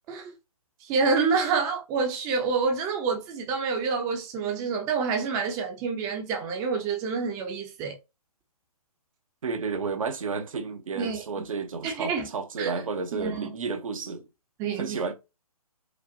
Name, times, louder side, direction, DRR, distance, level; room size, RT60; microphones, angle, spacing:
voice 1, 0.8-7.9 10.9-11.2 11.8-12.3 12.6-12.7 13.1-13.5 14.6-15.0, right 5 dB, 15° right, 0.7 m, -27 dB
voice 2, 9.4-14.3 14.8-15.1, right 4 dB, 60° right, 0.9 m, -32 dB
5.1 x 2.3 x 2.7 m
figure-of-eight pair, 140°, 20 cm